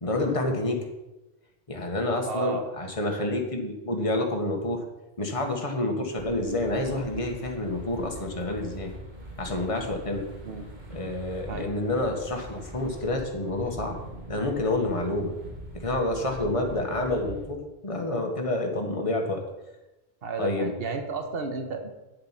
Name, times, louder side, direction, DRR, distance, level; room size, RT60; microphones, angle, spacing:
voice 1, 0.0-0.9 1.7-4.8 5.2-8.9 9.4-10.2 10.9-14.0 14.3-15.3 15.7-19.4 20.4-20.7, left 2 dB, 35° left, 2 dB, 1.6 m, -28 dB
voice 2, 2.3-2.6 10.4-10.7 11.5-11.8 20.2-21.9, right 4 dB, 70° right, 6 dB, 1.4 m, -32 dB
sound 1, 6.2-17.5, right 1 dB, 45° right, 2.0 m, -43 dB
9.5 x 7.7 x 5.8 m, 1.0 s
omnidirectional pair, 1.0 m